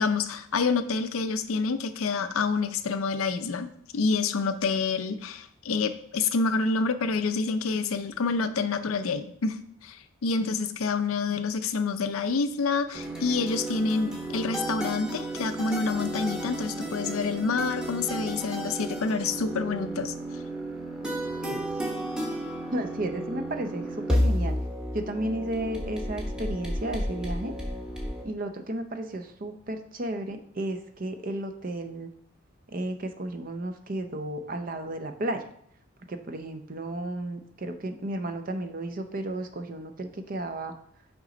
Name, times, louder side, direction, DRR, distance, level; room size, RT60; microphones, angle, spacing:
voice 1, 0.0-3.7 3.9-20.1, left 4 dB, 90° left, 10 dB, 0.5 m, -28 dB
sound 1, 12.9-28.2, equal, 5° right, 1.0 m, -32 dB
voice 2, 22.7-24.6 24.9-27.5 28.2-32.1 32.7-35.5 36.1-40.7, right 1 dB, 40° right, 8 dB, 0.6 m, -33 dB
6.0 x 5.1 x 3.9 m, 0.66 s
head